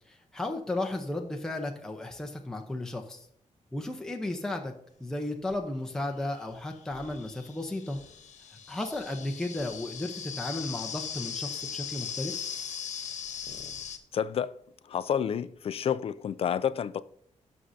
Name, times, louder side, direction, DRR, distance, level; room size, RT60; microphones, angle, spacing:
voice 1, 0.1-3.3 3.7-4.7 5.0-8.0 8.7-12.5, left 2 dB, 5° left, 0.8 m, -34 dB
sound 1, 5.5-5.6 6.5-14.0, left 7 dB, 70° left, 1.1 m, -39 dB
voice 2, 14.1-14.5 14.9-17.0, left 8 dB, 50° left, 0.4 m, -29 dB
17.0 x 6.4 x 2.7 m
wide cardioid pair, 160°, 13 cm